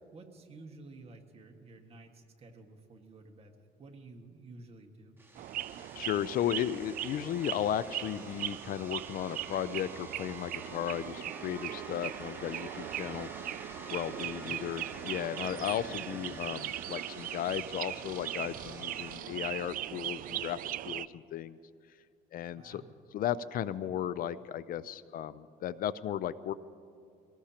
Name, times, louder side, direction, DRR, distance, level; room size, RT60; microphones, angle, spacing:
voice 1, 0.1-5.2 14.4-14.8 22.5-22.9, right 3 dB, 35° right, 3 dB, 1.7 m, -52 dB
sound 1, 5.2-19.2, right 2 dB, 15° right, 1.7 m, -49 dB
sound 2, 5.4-21.1, right 13 dB, 55° right, 0.4 m, -39 dB
voice 2, 6.0-13.3 13.9-21.6 22.3-22.8 23.1-26.5, left 10 dB, 60° left, 16 dB, 0.4 m, -35 dB
Wind instrument woodwind instrument, 10.5-15.4, left 3 dB, ahead, 0.9 m, -56 dB
23.0 x 18.0 x 2.9 m, 2.4 s
cardioid pair, 110°, 17 cm